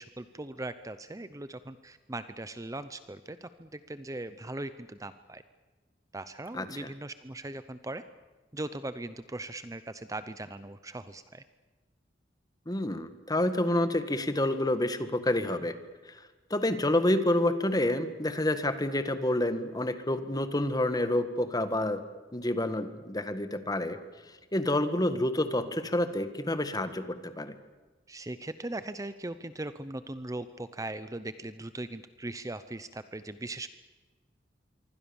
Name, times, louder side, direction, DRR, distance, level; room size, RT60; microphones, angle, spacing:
voice 1, 0.0-5.4 6.1-8.0 8.5-11.4 28.1-33.7, right 2 dB, 20° right, 12 dB, 0.8 m, -39 dB
voice 2, 12.7-15.8 16.1-16.2 16.5-22.0 22.3-24.0 24.5-27.5, left 1 dB, 20° left, 10 dB, 1.8 m, -28 dB
26.5 x 24.0 x 7.1 m, 1.3 s
head